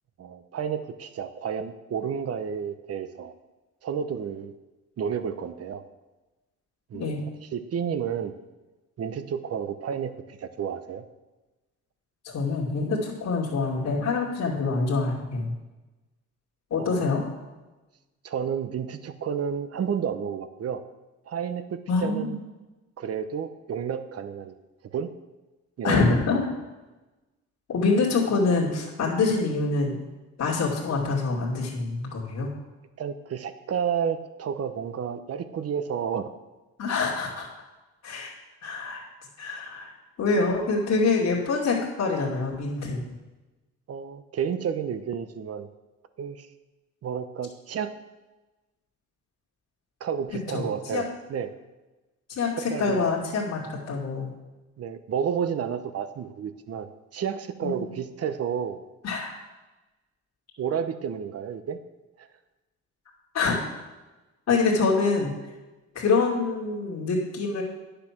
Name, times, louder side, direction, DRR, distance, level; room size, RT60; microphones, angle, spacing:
voice 1, 0.2-3.3 3.8-4.5 5.0-5.8 6.9-7.2 7.5-8.3 9.0-11.0 16.8-17.0 18.2-20.8 21.3-22.4 23.0-24.6 24.8-25.1 25.8-26.2 33.0-36.4 43.9-45.7 46.2-46.5 47.0-47.9 50.0-51.5 52.6-53.1 54.8-58.8 60.6-61.8 62.2-62.3, right 7 dB, 55° right, 11 dB, 0.9 m, -31 dB
voice 2, 12.2-15.5 16.7-17.2 21.9-22.4 25.8-26.5 27.7-30.0 30.4-32.5 36.8-37.5 38.0-38.3 38.6-39.0 39.4-39.9 40.2-43.0 50.4-51.0 52.3-54.3 57.6-57.8 59.0-59.4 63.3-63.6 64.5-65.3 65.9-67.6, left 4 dB, 60° left, -4 dB, 2.5 m, -25 dB
10.0 x 6.8 x 6.0 m, 1.1 s
cardioid pair, 90°, 30 cm